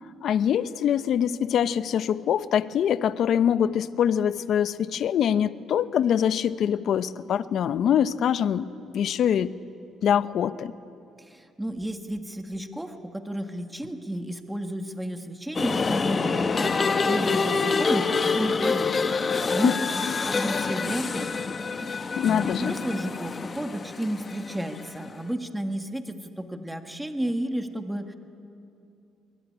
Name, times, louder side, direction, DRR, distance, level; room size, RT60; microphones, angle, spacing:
voice 1, 0.2-9.5 10.0-10.7 19.6-19.8 20.0-20.1 22.2-22.7, left 9 dB, 70° left, 14 dB, 0.8 m, -24 dB
voice 2, 11.2-21.5 21.7-28.2, right 1 dB, 5° right, 6 dB, 1.7 m, -32 dB
sound 1, 15.5-25.0, left 4 dB, 40° left, 1.4 m, -26 dB
23.0 x 22.5 x 9.9 m, 2.6 s
cardioid pair, 90°, 0 cm